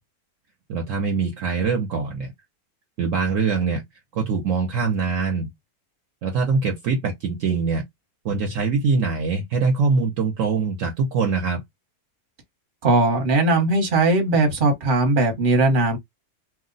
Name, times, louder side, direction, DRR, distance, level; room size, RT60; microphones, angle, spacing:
voice 1, 0.7-2.3 3.0-3.8 4.1-5.5 6.2-7.8 8.2-11.6, right 4 dB, 65° right, 1.0 m, -23 dB
voice 2, 12.8-16.0, right 2 dB, 40° right, 1.0 m, -19 dB
2.6 x 2.1 x 3.8 m
omnidirectional pair, 1.6 m